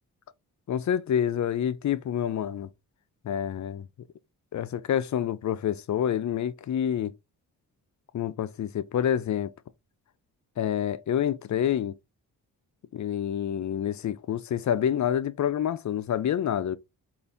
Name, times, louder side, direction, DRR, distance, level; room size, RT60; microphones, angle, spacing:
voice 1, 0.7-2.7 3.2-3.9 4.5-7.1 8.1-9.5 10.6-11.9 12.9-16.8, left 9 dB, 50° left, 0.5 m, -27 dB
3.9 x 2.5 x 3.5 m
cardioid pair, 60°, 39 cm